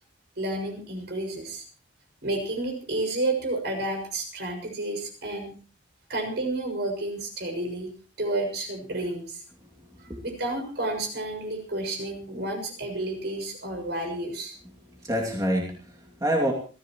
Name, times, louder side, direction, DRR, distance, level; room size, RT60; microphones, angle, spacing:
voice 1, 0.4-1.6 2.2-5.5 6.1-9.4 10.0-14.5, right 2 dB, 65° right, 4 dB, 6.7 m, -31 dB
voice 2, 9.5-10.2 14.9-16.5, equal, 20° right, 0 dB, 2.6 m, -28 dB
28.5 x 15.0 x 3.1 m, 0.37 s
head